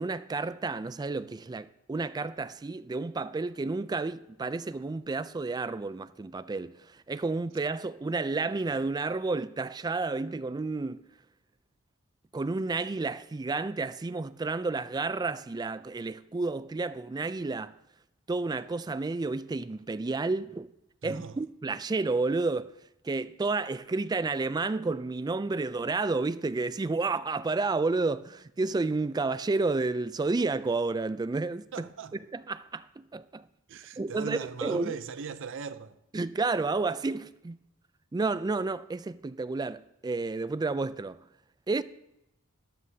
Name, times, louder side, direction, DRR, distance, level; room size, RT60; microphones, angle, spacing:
voice 1, 0.0-11.0 12.3-17.7 18.3-20.7 21.0-22.8 23.0-31.9 32.3-33.5 34.0-35.0 36.1-37.6 38.1-41.2 41.7-41.8, right 3 dB, 20° right, 0.3 m, -31 dB
voice 2, 21.0-21.4 31.7-32.1 33.7-36.0, right 5 dB, 60° right, 0.6 m, -38 dB
13.5 x 12.5 x 2.8 m
head